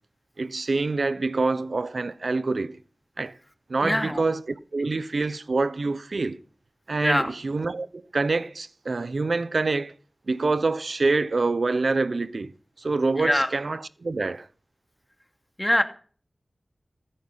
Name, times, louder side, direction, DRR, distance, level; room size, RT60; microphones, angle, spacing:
voice 1, 0.4-2.8 3.2-3.3 3.7-4.4 4.7-6.4 6.9-9.9 10.3-12.5 12.8-14.5, right 3 dB, 75° right, 1.0 m, -26 dB
voice 2, 3.8-4.2 7.0-7.3 13.2-13.5 15.6-15.8, left 1 dB, 15° left, 2.5 m, -23 dB
14.5 x 10.0 x 5.7 m
wide cardioid pair, 50°, 0 cm